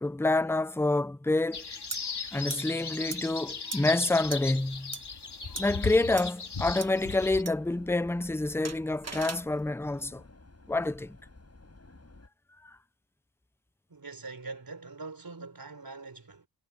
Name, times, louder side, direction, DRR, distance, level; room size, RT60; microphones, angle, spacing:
voice 1, 0.0-1.6 2.3-4.9 5.6-10.2 10.7-11.2 12.6-12.7, left 2 dB, 5° left, 0.6 m, -28 dB
sound 1, 1.5-7.4, left 4 dB, 75° left, 2.7 m, -37 dB
sound 2, 1.9-2.0 2.5-2.6 3.1-3.2 3.7-3.8 4.3-4.4 4.9-5.0 5.6-5.7 6.2-6.3 6.8-6.9 7.5-7.6 8.6-9.5, right 4 dB, 40° right, 1.3 m, -37 dB
Subway metro underground, 6.8-12.3, left 2 dB, 40° left, 7.8 m, -53 dB
voice 2, 13.9-16.5, right 3 dB, 60° right, 4.5 m, -43 dB
wide cardioid pair, 70°, 40 cm